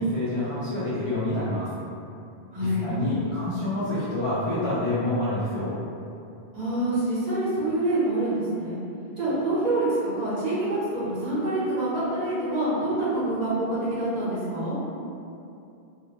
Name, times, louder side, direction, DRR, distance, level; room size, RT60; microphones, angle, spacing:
voice 1, 0.0-1.7 2.6-5.7, left 1 dB, 50° left, -11 dB, 0.4 m, -27 dB
voice 2, 2.5-2.9 6.5-8.8 9.2-9.9 10.1-14.8, right 1 dB, 45° right, -11 dB, 0.9 m, -26 dB
2.4 x 2.1 x 2.8 m, 2.6 s
omnidirectional pair, 1.1 m